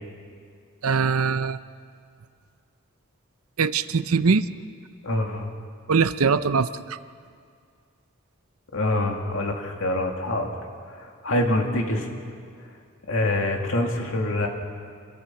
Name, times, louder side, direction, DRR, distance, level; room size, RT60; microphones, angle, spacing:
voice 1, 0.8-1.6 3.6-4.4 5.9-7.0, right 5 dB, 85° right, 13 dB, 0.7 m, -22 dB
voice 2, 5.0-5.5 8.7-10.5 10.9-12.1 13.1-14.5, left 1 dB, 65° left, 2 dB, 2.3 m, -25 dB
26.5 x 21.0 x 5.9 m, 2.2 s
head